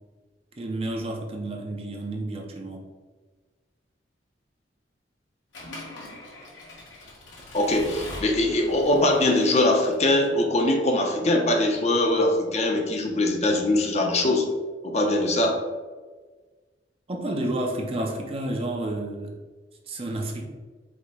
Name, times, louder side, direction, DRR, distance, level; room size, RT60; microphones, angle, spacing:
voice 1, 0.6-2.9 17.1-19.4 19.9-20.5, right 1 dB, 30° right, 1 dB, 0.6 m, -30 dB
Accelerating revving vroom / Mechanisms, 5.5-10.4, left 1 dB, 90° left, 1.3 m, -42 dB
voice 2, 7.5-14.5 14.8-15.6, left 1 dB, 35° left, 2 dB, 0.6 m, -22 dB
5.0 x 2.1 x 4.6 m, 1.4 s
head